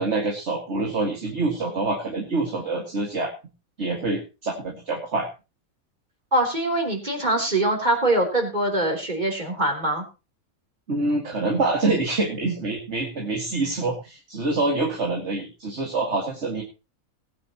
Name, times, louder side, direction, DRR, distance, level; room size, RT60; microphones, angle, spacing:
voice 1, 0.0-3.3 3.8-5.3 10.9-16.6, right 2 dB, 50° right, 1 dB, 2.3 m, -26 dB
voice 2, 6.3-10.0, right 1 dB, 30° right, 3 dB, 3.5 m, -23 dB
19.5 x 9.7 x 3.0 m, 0.29 s
omnidirectional pair, 1.5 m